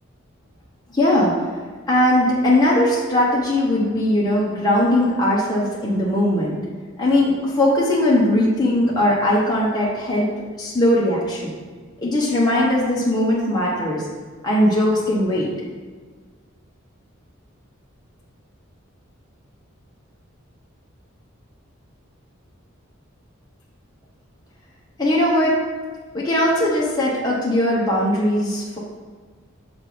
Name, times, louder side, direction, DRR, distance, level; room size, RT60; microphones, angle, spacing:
voice 1, 0.9-1.3 1.9-6.5 7.0-10.3 10.6-11.5 12.0-14.1 14.4-15.5 25.0-25.6 26.1-28.8, left 1 dB, 20° left, -6 dB, 1.0 m, -19 dB
6.9 x 3.3 x 6.0 m, 1.5 s
head